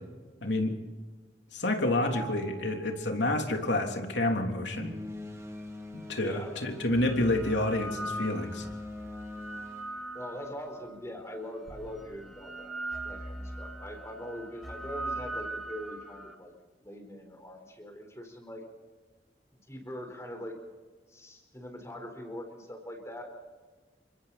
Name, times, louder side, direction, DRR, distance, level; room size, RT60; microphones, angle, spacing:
voice 1, 0.4-0.7 1.5-4.9 6.1-8.6, left 1 dB, 85° left, 2 dB, 3.5 m, -29 dB
Mallet percussion, 2.1-4.1, right 2 dB, 40° right, 5.4 m, -47 dB
sound 1, 4.7-10.8, left 2 dB, 15° right, 2.4 m, -43 dB
sound 2, 5.6-5.7 6.6-10.9 11.7-16.3, right 1 dB, ahead, 2.1 m, -40 dB
voice 2, 6.2-6.6 10.1-12.7 13.0-16.5 16.8-18.6 19.5-20.6 21.1-23.3, equal, 15° left, 3 dB, 4.6 m, -42 dB
28.5 x 24.5 x 4.3 m, 1.3 s
head